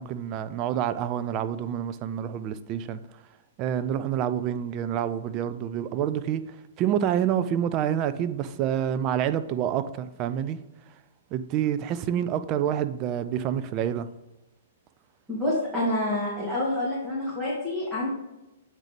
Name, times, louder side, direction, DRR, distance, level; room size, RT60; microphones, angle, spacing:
voice 1, 0.0-3.2 3.6-10.6 10.9-11.0 11.3-14.1, right 9 dB, 35° right, 0.5 m, -28 dB
voice 2, 15.3-18.1, left 1 dB, 10° right, 2.4 m, -27 dB
8.7 x 3.9 x 3.4 m
hypercardioid pair, 125°, 0 cm